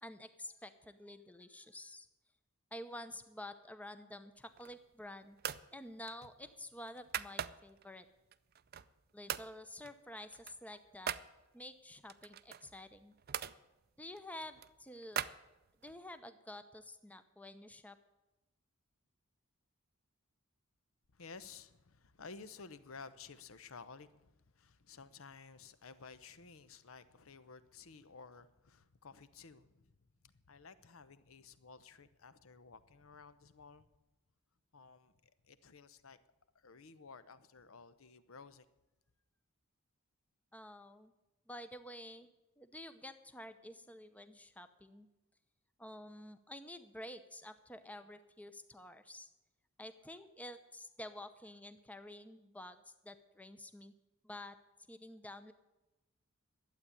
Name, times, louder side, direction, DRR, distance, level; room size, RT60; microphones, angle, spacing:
voice 1, 0.0-2.1 2.7-5.4 5.7-8.1 9.1-11.2 11.5-13.1 14.0-15.2 15.8-18.0 40.5-41.1 41.5-42.3 42.6-45.1 45.8-49.3 49.8-53.9 54.2-54.6 54.9-55.5, left 1 dB, 5° left, 0.7 m, -50 dB
sound 1, 4.4-4.9 5.4-5.7 6.1-7.8 8.3-9.0 9.3-9.5 9.8-11.3 12.1-13.6 14.1-16.0, right 9 dB, 45° right, 0.5 m, -42 dB
voice 2, 21.1-33.9 34.7-36.2 36.5-38.7, left 4 dB, 65° left, 0.8 m, -54 dB
12.0 x 8.5 x 9.8 m
head